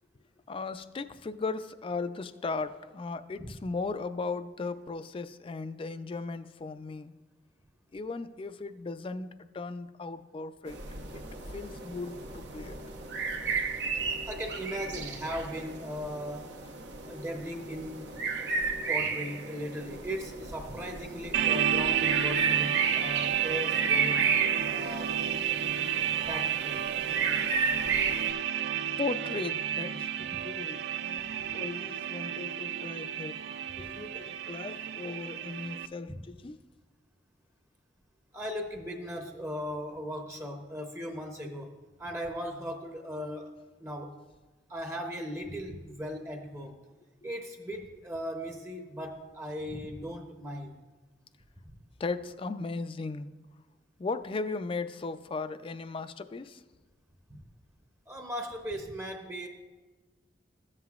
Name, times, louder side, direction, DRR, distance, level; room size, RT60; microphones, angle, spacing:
voice 1, 0.5-7.1 7.9-10.8 11.1-11.3 11.5-12.8 25.8-26.0 28.6-33.4 33.8-36.6 47.2-47.3 52.0-53.3 54.0-56.6, left 3 dB, 30° left, 0.4 m, -37 dB
sound 1, 10.7-28.3, right 4 dB, 85° right, 0.9 m, -34 dB
voice 2, 14.3-16.5 17.1-18.1 18.9-24.2 24.7-25.2 26.3-26.9 31.4-31.5 36.1-36.2 38.3-43.5 43.8-44.1 44.7-46.9 47.2-50.8 51.7-51.8 57.3-57.4 58.1-59.5, equal, 15° right, 0.7 m, -38 dB
sound 2, 21.3-35.9, right 9 dB, 65° right, 0.4 m, -31 dB
14.0 x 7.6 x 2.4 m
head